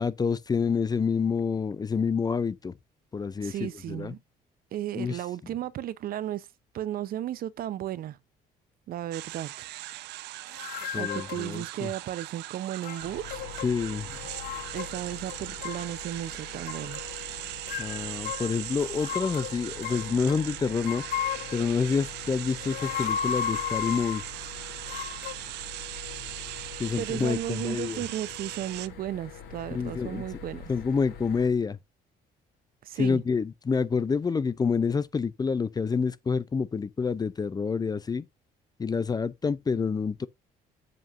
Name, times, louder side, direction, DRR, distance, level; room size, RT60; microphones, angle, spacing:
voice 1, 0.0-2.7 3.1-4.1 4.9-5.2 10.9-11.9 13.6-14.1 17.8-21.0 21.5-24.2 26.8-28.0 29.7-30.2 30.7-31.8 33.0-38.2 38.8-40.3, left 5 dB, 25° left, 0.6 m, -28 dB
voice 2, 3.4-4.2 4.7-6.5 6.7-8.2 8.9-9.7 11.0-13.4 14.7-17.0 27.0-30.7 32.8-33.2, right 12 dB, 60° right, 0.8 m, -34 dB
sound 1, 9.1-28.9, right 18 dB, 80° right, 0.5 m, -40 dB
sound 2, 10.5-11.6 12.8-13.7 14.0-15.0 15.3-15.9 16.7-17.1 17.7-20.4 20.9-21.7 22.5-24.3 24.9-25.3, left 9 dB, 65° left, 0.9 m, -34 dB
sound 3, 13.0-31.5, left 6 dB, 80° left, 4.1 m, -45 dB
7.7 x 7.7 x 2.6 m
cardioid pair, 110°, 17 cm